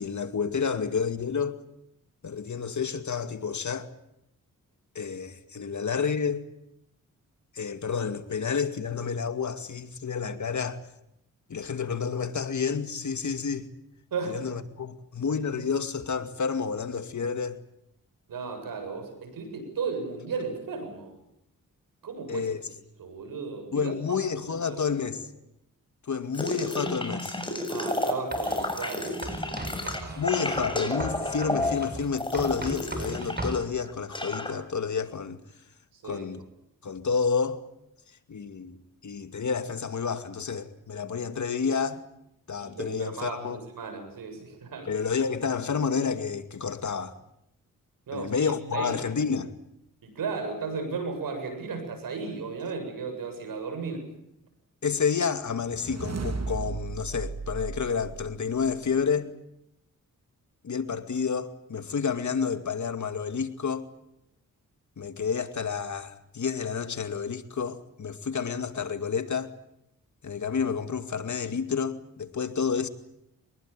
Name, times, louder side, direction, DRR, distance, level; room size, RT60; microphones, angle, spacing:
voice 1, 0.0-1.6 2.2-3.9 4.9-6.4 7.5-10.8 11.5-13.7 14.3-17.6 22.3-22.6 23.7-25.2 26.1-27.3 30.2-35.4 36.0-36.4 36.8-37.6 38.3-42.1 42.5-43.6 44.9-47.1 48.1-49.5 54.8-59.3 60.6-63.9 65.0-69.5 70.2-72.9, left 6 dB, 60° left, 2.4 m, -30 dB
voice 2, 14.1-14.5 18.3-21.2 22.0-22.7 23.0-24.2 24.4-24.8 27.7-30.3 35.9-36.3 42.6-44.9 48.1-48.3 48.7-49.0 50.0-54.1, right 4 dB, 85° right, 7.7 m, -35 dB
sound 1, 26.3-33.6 33.9-34.5, left 1 dB, 15° left, 7.4 m, -31 dB
Writing, 28.3-28.7 29.2-33.6, right 1 dB, 30° right, 7.0 m, -37 dB
sound 2, 55.5-58.8, right 4 dB, 50° right, 3.1 m, -35 dB
24.0 x 21.0 x 9.1 m
cardioid pair, 60°, 33 cm